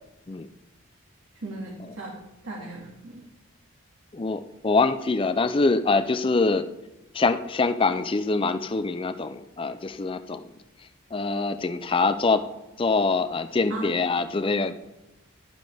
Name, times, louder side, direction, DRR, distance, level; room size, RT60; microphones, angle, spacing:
voice 1, 1.4-2.2 2.4-3.2 13.7-13.9, right 2 dB, 75° right, -2 dB, 2.0 m, -36 dB
voice 2, 4.1-6.7 7.1-10.4 11.1-12.4 12.8-14.8, left 3 dB, 25° left, 10 dB, 0.4 m, -24 dB
11.0 x 9.1 x 3.5 m, 1.0 s
head